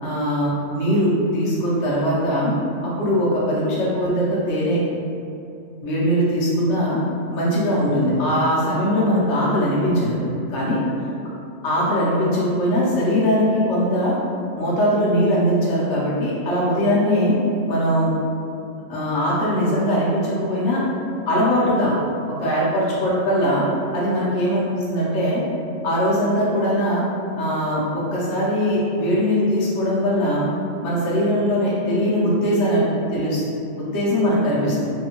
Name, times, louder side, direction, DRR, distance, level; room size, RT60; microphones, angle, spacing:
voice 1, 0.0-2.5 2.8-4.8 5.8-7.0 7.3-10.1 10.5-10.8 11.6-14.1 14.6-17.3 17.7-18.1 18.9-20.8 21.3-21.9 22.3-23.6 23.9-25.4 25.8-27.0 27.3-30.5 30.8-32.8 33.1-33.4 33.7-34.8, equal, 65° left, -8 dB, 0.9 m, -21 dB
3.4 x 2.2 x 2.8 m, 2.7 s
omnidirectional pair, 1.4 m